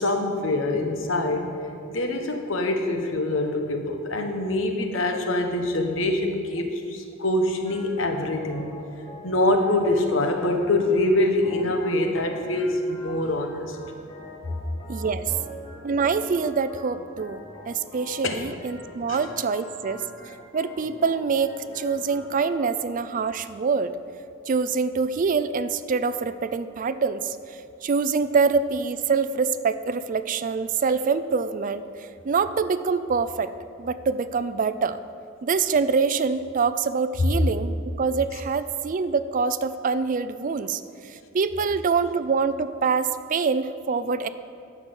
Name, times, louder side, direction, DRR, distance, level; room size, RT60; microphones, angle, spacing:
voice 1, 0.0-1.5 1.9-8.7 9.2-13.8 18.2-18.4 19.1-19.2, left 1 dB, 75° left, 4 dB, 1.2 m, -24 dB
Organ, 7.7-22.7, left 1 dB, 25° left, 2.2 m, -44 dB
voice 2, 14.9-15.3 15.8-20.0 20.5-24.0 24.5-33.5 33.8-35.0 35.4-44.3, right 5 dB, 40° right, 13 dB, 0.4 m, -25 dB
12.0 x 6.0 x 7.1 m, 2.5 s
head